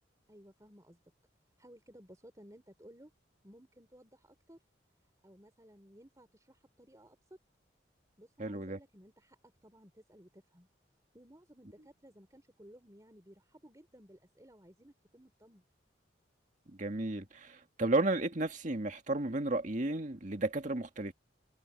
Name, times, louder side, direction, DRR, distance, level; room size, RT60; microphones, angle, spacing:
voice 1, 0.3-1.0 1.6-3.1 3.4-4.6 5.2-7.2 8.2-10.7 11.1-15.6, equal, 20° right, 4.3 m, -58 dB
voice 2, 8.4-8.8 16.8-21.1, right 2 dB, 40° right, 1.8 m, -33 dB
head